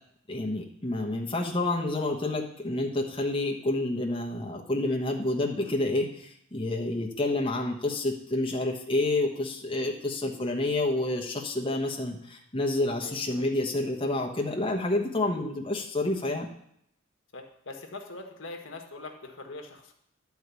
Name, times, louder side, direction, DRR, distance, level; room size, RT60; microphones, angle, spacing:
voice 1, 0.3-16.5, left 2 dB, 25° left, -1 dB, 1.2 m, -29 dB
voice 2, 13.0-13.5 17.3-19.9, left 2 dB, 65° left, 3 dB, 1.4 m, -43 dB
11.5 x 4.7 x 8.2 m, 0.72 s
head